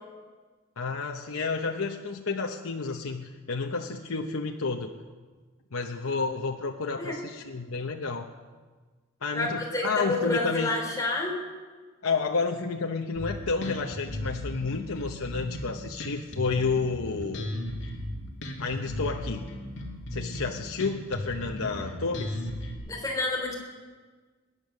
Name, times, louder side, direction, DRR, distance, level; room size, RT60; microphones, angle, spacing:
voice 1, 0.8-4.9 5.7-8.3 9.2-10.7 12.0-17.5 18.6-19.5 20.1-22.4, left 4 dB, 80° left, 3 dB, 0.9 m, -30 dB
voice 2, 9.3-11.4 22.9-23.5, left 2 dB, 15° left, -1 dB, 3.2 m, -29 dB
Bass guitar, 13.1-22.7, left 1 dB, 55° left, 2.3 m, -36 dB
21.5 x 9.8 x 6.5 m, 1.4 s
head